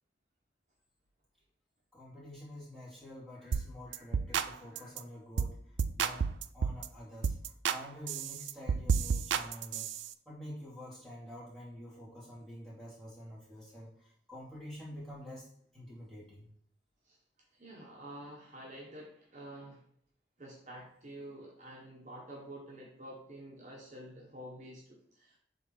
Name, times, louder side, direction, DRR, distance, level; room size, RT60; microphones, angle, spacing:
voice 1, 1.9-16.5, equal, 5° left, -9 dB, 2.6 m, -48 dB
sound 1, 3.5-3.7 3.9-4.5 4.8-5.0 5.4-5.5 5.8-6.9 7.2-7.8 8.1-10.1, right 6 dB, 90° right, 0.4 m, -31 dB
voice 2, 17.5-19.8 20.4-25.4, right 1 dB, 40° right, -3 dB, 1.2 m, -48 dB
6.6 x 3.8 x 4.6 m, 0.66 s
head